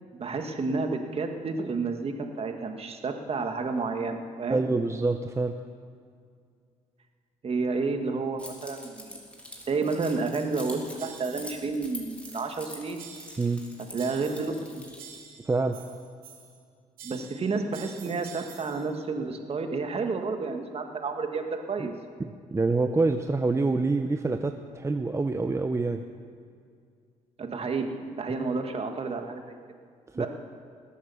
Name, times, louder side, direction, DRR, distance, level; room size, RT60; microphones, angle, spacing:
voice 1, 0.2-4.6 7.4-9.2 9.7-13.0 13.9-14.8 17.0-21.9 27.4-29.4 30.1-30.3, right 4 dB, 45° right, 5 dB, 1.8 m, -30 dB
voice 2, 4.5-5.6 13.4-13.6 15.5-15.8 22.2-26.0 28.3-28.5 30.2-30.3, right 3 dB, 20° right, 7 dB, 0.7 m, -26 dB
Keys jangling, 8.4-15.1, left 1 dB, 10° left, 3.3 m, -45 dB
sound 1, 11.0-11.6 12.2-12.6 13.0-13.6 14.0-14.6 15.0-16.6 17.0-18.9, right 7 dB, 85° right, 2.8 m, -48 dB
19.5 x 8.6 x 7.2 m, 2.2 s
supercardioid pair, 75°, 14 cm